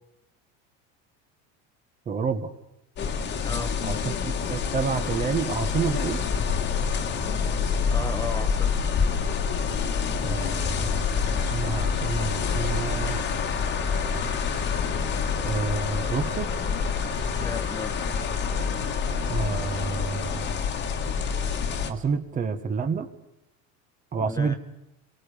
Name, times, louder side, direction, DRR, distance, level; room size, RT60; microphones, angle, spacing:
voice 1, 2.0-2.5 3.8-6.2 10.2-13.2 15.4-16.5 19.3-20.5 21.9-23.1 24.1-24.6, right 5 dB, 25° right, 9 dB, 1.5 m, -29 dB
sound 1, 3.0-21.9, left 6 dB, 35° left, 1.9 m, -27 dB
voice 2, 3.4-3.7 7.6-8.7 17.4-17.9 24.2-24.5, left 4 dB, 10° left, 6 dB, 0.9 m, -34 dB
sound 2, 11.5-20.7, right 8 dB, 90° right, 4.3 m, -47 dB
29.5 x 23.5 x 5.2 m, 0.88 s
cardioid pair, 150°, 30 cm